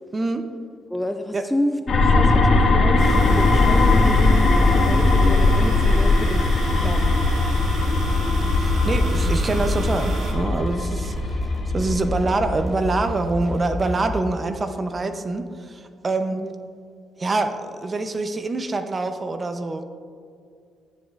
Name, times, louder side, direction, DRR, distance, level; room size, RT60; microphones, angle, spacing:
voice 1, 0.1-0.4 1.3-1.4 8.5-11.4 11.7-16.5 17.2-19.8, right 2 dB, 30° right, 8 dB, 0.7 m, -25 dB
voice 2, 0.9-6.5 6.7-7.0 9.3-9.4 16.3-16.5, equal, ahead, 6 dB, 0.5 m, -29 dB
sound 1, 1.9-12.6, left 2 dB, 55° left, 1.9 m, -19 dB
sound 2, 3.0-10.3, right 1 dB, 65° right, 1.5 m, -31 dB
sound 3, 8.6-14.2, left 1 dB, 15° right, 1.7 m, -30 dB
13.5 x 9.4 x 2.5 m, 2.2 s
cardioid pair, 90°, 0 cm